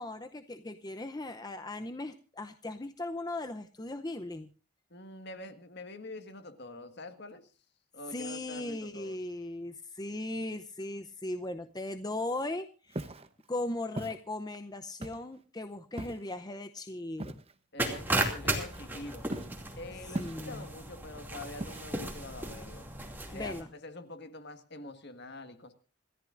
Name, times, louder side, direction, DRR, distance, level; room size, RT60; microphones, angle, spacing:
voice 1, 0.0-4.5 8.1-13.1 13.5-17.3 20.2-20.6 23.3-23.7, left 2 dB, 20° left, 8 dB, 0.7 m, -38 dB
voice 2, 4.9-7.5 7.9-9.2 17.7-19.3 19.7-22.9 23.3-25.7, left 2 dB, 50° left, 9 dB, 1.7 m, -45 dB
Walk footsteps, 12.9-13.3 14.0-14.2 15.0-15.4 16.0-16.3 17.2-17.5 18.4-18.9 19.3-19.6 20.1-20.7 21.6-22.1, right 1 dB, 25° right, 0.9 m, -39 dB
sound 1, 17.8-23.6, right 1 dB, 10° right, 2.5 m, -35 dB
27.5 x 14.0 x 2.6 m, 0.36 s
head